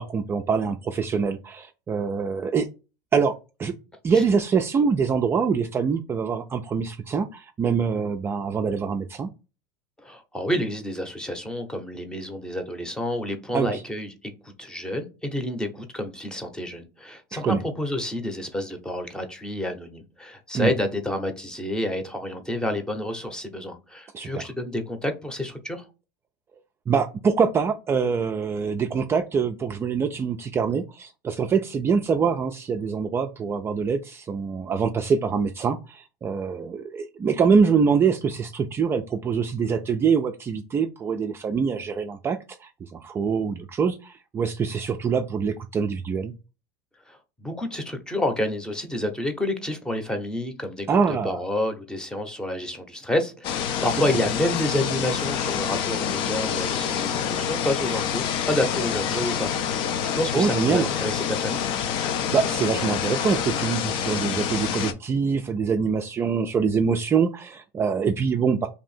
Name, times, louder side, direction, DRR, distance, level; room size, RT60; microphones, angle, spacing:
voice 1, 0.0-2.7 3.1-3.3 3.6-3.7 4.0-9.3 13.5-13.8 17.3-17.6 20.5-20.7 24.1-24.3 26.9-46.3 50.9-51.4 60.3-60.9 62.3-68.7, right 6 dB, 25° right, 0.3 m, -24 dB
voice 2, 10.0-25.9 47.1-61.7, left 1 dB, 5° left, 0.8 m, -29 dB
sound 1, 53.4-64.9, left 8 dB, 55° left, 0.5 m, -27 dB
2.8 x 2.5 x 4.1 m
supercardioid pair, 105°, 10 cm